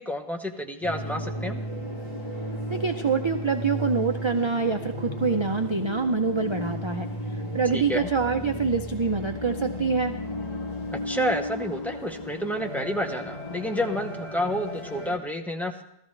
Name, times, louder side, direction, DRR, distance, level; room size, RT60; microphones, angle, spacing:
voice 1, 0.0-1.6 7.7-8.1 10.9-15.8, equal, ahead, 4 dB, 0.8 m, -29 dB
sound 1, 0.8-15.2, left 1 dB, 35° left, 1.9 m, -34 dB
voice 2, 2.7-7.1 7.5-10.2, right 4 dB, 35° right, 6 dB, 0.5 m, -25 dB
17.0 x 13.5 x 3.2 m, 0.80 s
omnidirectional pair, 1.2 m